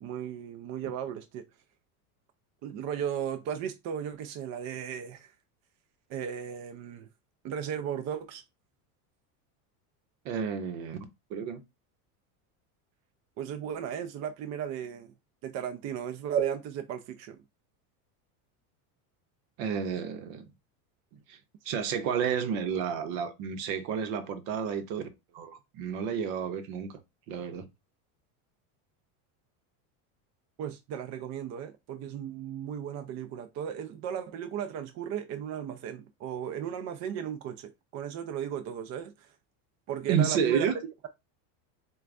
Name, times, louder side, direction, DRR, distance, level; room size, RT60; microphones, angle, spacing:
voice 1, 0.0-1.4 2.6-5.3 6.1-7.1 7.4-8.4 13.4-15.1 15.4-17.4 30.6-39.3 39.9-41.1, right 9 dB, 40° right, 0.4 m, -35 dB
voice 2, 10.2-11.0 11.3-11.6 19.6-20.5 21.3-21.4 21.6-25.0 25.3-27.0 27.3-27.7 40.1-40.7, right 7 dB, 65° right, 0.9 m, -30 dB
4.3 x 2.3 x 2.5 m
supercardioid pair, 125°, 45 cm